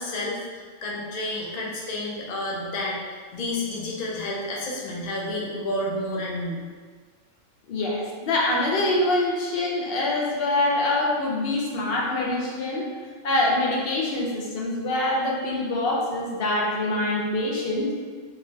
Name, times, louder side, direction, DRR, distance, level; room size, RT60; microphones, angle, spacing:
voice 1, 0.0-6.6, left 1 dB, 85° left, -3 dB, 0.3 m, -30 dB
voice 2, 7.7-12.8 13.2-17.9, left 2 dB, 60° left, -3 dB, 0.7 m, -25 dB
3.1 x 2.4 x 2.5 m, 1.5 s
omnidirectional pair, 1.3 m